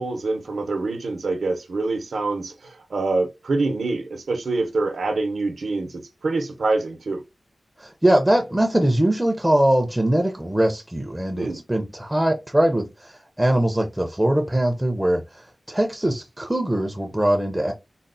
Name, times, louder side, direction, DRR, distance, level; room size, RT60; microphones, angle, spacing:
voice 1, 0.0-7.2 11.4-11.6, right 3 dB, 75° right, 0.6 m, -25 dB
voice 2, 7.8-17.7, right 1 dB, 10° right, 0.4 m, -22 dB
4.0 x 2.0 x 2.5 m
wide cardioid pair, 110°, 0 cm